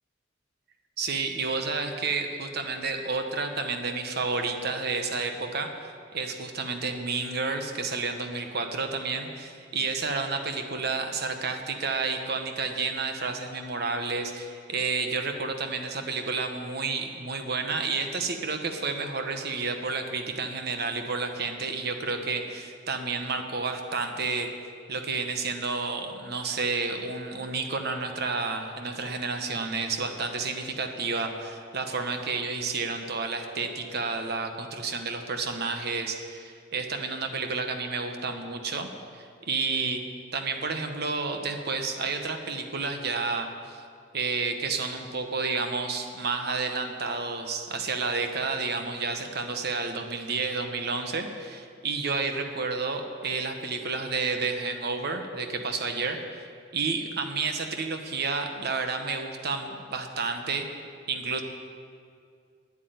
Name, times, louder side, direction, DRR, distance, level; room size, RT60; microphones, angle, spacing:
voice 1, 1.0-24.5 24.9-40.0 40.3-43.8 44.1-56.5 56.7-60.7 61.1-61.4, right 4 dB, 60° right, 6 dB, 1.1 m, -30 dB
10.0 x 8.3 x 9.3 m, 2.3 s
head